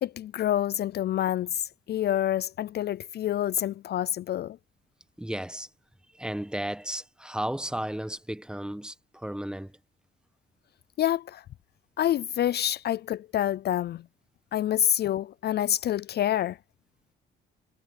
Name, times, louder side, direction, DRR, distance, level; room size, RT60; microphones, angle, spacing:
voice 1, 0.0-4.6 11.0-11.4 12.0-14.0 14.5-16.6, left 11 dB, 55° left, 0.4 m, -27 dB
voice 2, 5.2-5.7 6.2-9.7, right 1 dB, 5° right, 1.2 m, -34 dB
cardioid pair, 90°, 20 cm